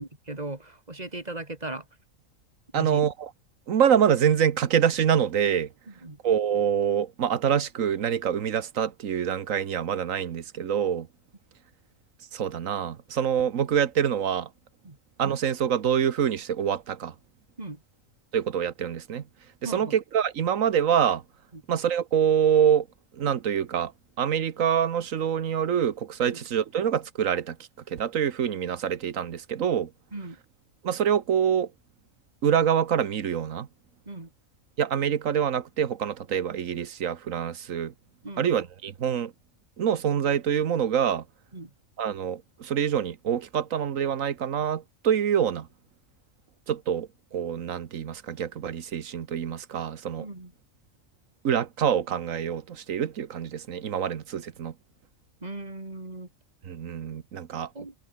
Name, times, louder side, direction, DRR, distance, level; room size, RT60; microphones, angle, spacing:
voice 1, 0.0-1.8 2.7-3.0 5.9-6.2 14.8-15.0 17.6-17.8 19.6-19.9 21.5-21.6 26.3-26.4 30.1-30.4 34.1-34.3 38.2-38.5 41.5-41.7 50.2-50.5 55.4-56.3 57.7-57.9, right 2 dB, 30° right, 2.8 m, -37 dB
voice 2, 2.7-3.3 3.7-5.7 6.2-11.1 12.3-14.5 15.2-17.1 18.3-19.2 19.6-21.2 21.7-22.8 23.2-23.9 24.2-27.6 27.9-29.9 30.8-31.7 32.4-33.7 34.8-37.9 38.4-39.3 39.8-41.2 42.0-45.7 46.7-50.3 51.4-54.7 56.7-57.7, right 8 dB, 85° right, 1.5 m, -25 dB
omnidirectional pair, 1.3 m